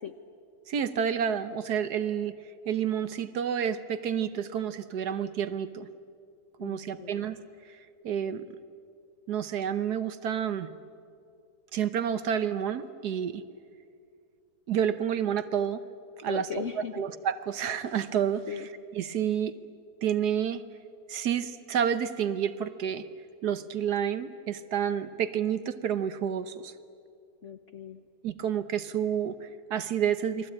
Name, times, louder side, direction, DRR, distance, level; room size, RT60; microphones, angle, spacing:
voice 1, 0.7-2.3 2.7-5.9 6.6-7.4 8.0-8.4 9.3-10.7 11.7-13.4 14.7-15.8 16.2-16.4 17.0-18.4 19.0-19.5 20.0-20.6 21.1-23.0 23.4-26.7 28.2-30.5, right 8 dB, 65° right, 12 dB, 1.4 m, -29 dB
voice 2, 6.6-7.2 16.3-17.0 18.5-18.7 27.4-28.0, left 7 dB, 50° left, 7 dB, 1.2 m, -38 dB
29.0 x 22.0 x 8.8 m, 2.4 s
omnidirectional pair, 1.9 m